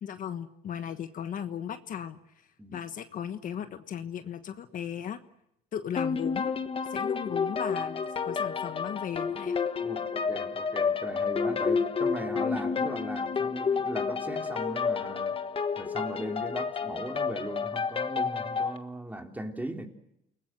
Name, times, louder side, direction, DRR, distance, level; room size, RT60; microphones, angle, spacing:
voice 1, 0.0-5.2 5.7-6.5 6.9-9.6, left 9 dB, 55° left, 1.4 m, -37 dB
sound 1, 6.0-18.8, left 5 dB, 35° left, 1.3 m, -30 dB
voice 2, 9.8-15.3 15.8-19.9, right 1 dB, 10° right, 3.3 m, -38 dB
29.0 x 19.5 x 7.9 m
cardioid pair, 110°, 17 cm